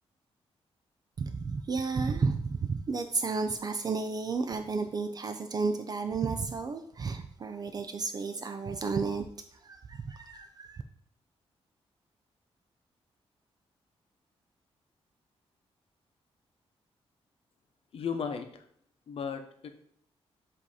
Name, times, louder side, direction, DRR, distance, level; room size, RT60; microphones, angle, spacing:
voice 1, 1.2-9.2 9.6-10.8, right 4 dB, 40° right, 8 dB, 0.4 m, -32 dB
voice 2, 17.9-18.6 19.1-19.7, left 6 dB, 60° left, 6 dB, 0.7 m, -35 dB
7.5 x 2.8 x 4.8 m, 0.65 s
wide cardioid pair, 145°, 11 cm